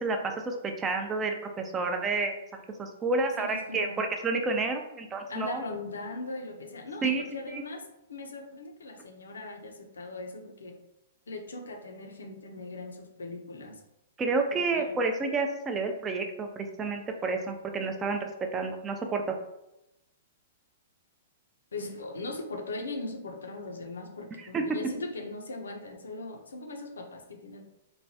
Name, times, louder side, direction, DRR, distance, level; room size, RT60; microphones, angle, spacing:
voice 1, 0.0-5.6 7.0-7.2 7.5-7.6 14.2-19.4 24.5-24.8, right 3 dB, 20° right, 4 dB, 0.4 m, -30 dB
voice 2, 3.4-4.0 5.3-7.8 8.1-10.8 11.3-13.8 14.5-15.0 21.7-27.6, left 2 dB, 85° left, 4 dB, 0.5 m, -39 dB
3.1 x 2.2 x 2.7 m, 0.89 s
hypercardioid pair, 125°, 0 cm